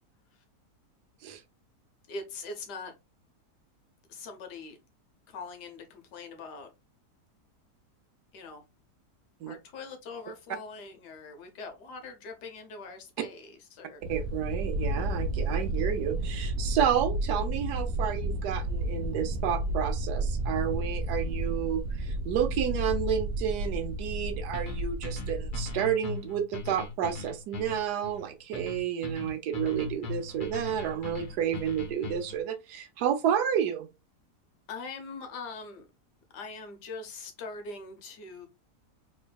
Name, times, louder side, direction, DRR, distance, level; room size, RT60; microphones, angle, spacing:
voice 1, 2.1-2.9 4.1-4.8 5.3-6.7 8.3-8.6 9.5-14.0 34.7-35.9 36.3-38.5, left 3 dB, 85° left, 1.5 m, -42 dB
sound 1, 14.0-25.7, right 1 dB, 55° right, 1.1 m, -32 dB
voice 2, 14.1-33.9, right 9 dB, 80° right, 1.2 m, -30 dB
sound 2, 24.5-32.4, left 3 dB, 40° left, 0.8 m, -39 dB
4.1 x 3.2 x 2.2 m
omnidirectional pair, 1.7 m